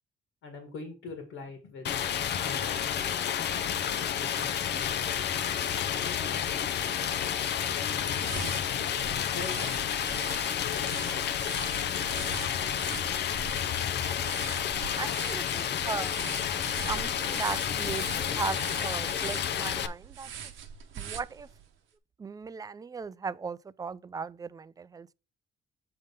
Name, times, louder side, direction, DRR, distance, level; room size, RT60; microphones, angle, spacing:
voice 1, 0.4-2.1 2.4-3.6 4.0-5.2 9.3-9.6 10.6-11.0 15.5-15.6, left 4 dB, 85° left, 1.9 m, -44 dB
Stream, 1.8-19.9, left 9 dB, 60° left, 0.6 m, -30 dB
sound 1, 8.0-21.7, right 8 dB, 80° right, 1.0 m, -44 dB
voice 2, 14.9-16.2 16.9-20.3 20.9-21.5 22.2-25.1, right 5 dB, 20° right, 0.3 m, -37 dB
7.7 x 3.7 x 5.1 m
cardioid pair, 90°, 20 cm